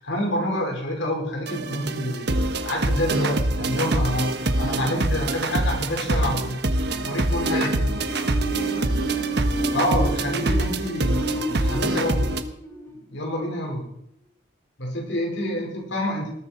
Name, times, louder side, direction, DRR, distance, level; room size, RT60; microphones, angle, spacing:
voice 1, 0.0-2.4 2.6-6.6 6.9-7.8 9.7-12.3 13.1-13.9 14.8-16.3, left 1 dB, 75° left, 1 dB, 5.2 m, -27 dB
sound 1, 1.5-12.4, right 1 dB, 60° right, 1.2 m, -25 dB
voice 2, 7.3-9.1 15.3-15.7, equal, 50° left, -2 dB, 3.6 m, -41 dB
sound 2, 8.0-13.7, right 2 dB, 15° left, 3.9 m, -31 dB
20.0 x 13.0 x 4.6 m, 0.73 s
head